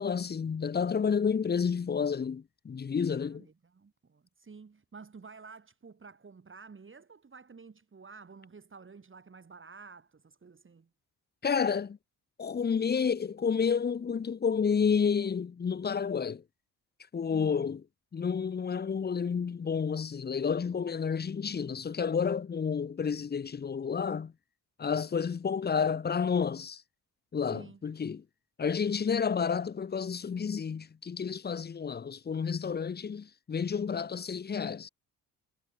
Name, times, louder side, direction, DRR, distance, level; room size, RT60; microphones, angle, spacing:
voice 1, 0.0-3.5 11.4-12.0 12.4-16.4 17.1-17.8 18.1-24.3 24.8-26.8 27.3-28.2 28.6-34.9, left 6 dB, 25° left, 0.8 m, -30 dB
voice 2, 3.2-10.9 17.3-17.7 27.5-27.8, right 5 dB, 35° right, 3.8 m, -51 dB
supercardioid pair, 65°, 37 cm